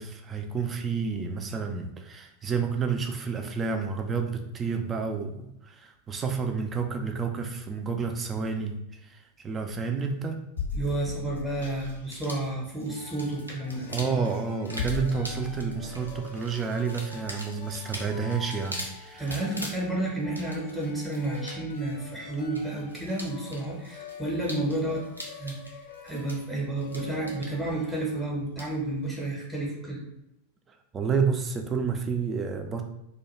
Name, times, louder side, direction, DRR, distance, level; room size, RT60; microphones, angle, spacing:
voice 1, 0.0-8.8 9.0-10.4 13.9-19.5 30.9-32.8, right 5 dB, 20° right, 4 dB, 0.4 m, -30 dB
sound 1, 10.6-11.9 13.7-13.8 14.8-16.1 17.9-18.0 18.5-18.6, left 4 dB, 75° left, 0.7 m, -35 dB
voice 2, 10.7-13.9 19.2-25.7 26.0-30.0, right 2 dB, 5° right, -3 dB, 0.7 m, -31 dB
sound 2, 12.0-29.2, equal, 90° right, 0.5 m, -44 dB
sound 3, 12.9-28.2, left 6 dB, 40° left, 0.5 m, -46 dB
2.3 x 2.2 x 3.0 m, 0.86 s
figure-of-eight pair, 90°, 0 cm